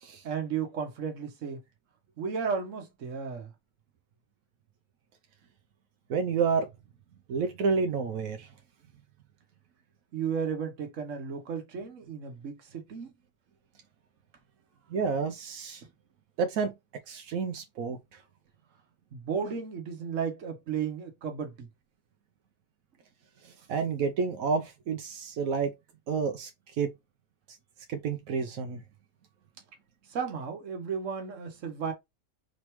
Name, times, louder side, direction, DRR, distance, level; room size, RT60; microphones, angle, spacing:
voice 1, 0.2-1.6 2.2-3.5 10.1-13.1 15.8-15.9 19.1-21.7 30.1-31.9, right 6 dB, 65° right, 1.4 m, -34 dB
voice 2, 6.1-6.7 7.3-8.5 14.9-15.8 16.4-16.7 17.1-18.0 23.7-25.7 26.1-26.5 26.8-26.9 27.9-28.8, right 5 dB, 90° right, 1.2 m, -29 dB
5.0 x 3.3 x 3.1 m
omnidirectional pair, 1.4 m